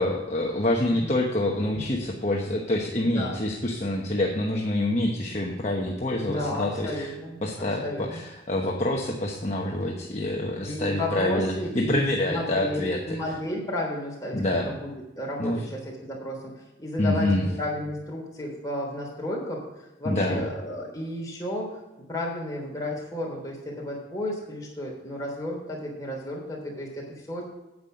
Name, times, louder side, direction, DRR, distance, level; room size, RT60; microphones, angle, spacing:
voice 1, 0.0-7.1 7.4-13.2 14.3-14.7 15.4-15.7 17.0-17.5 20.0-20.5, left 1 dB, 35° left, -1 dB, 1.0 m, -26 dB
voice 2, 3.0-3.4 6.2-8.2 10.6-16.5 16.8-19.6 20.0-27.4, left 1 dB, 20° left, -3 dB, 3.3 m, -33 dB
9.5 x 8.6 x 5.2 m, 1.0 s
head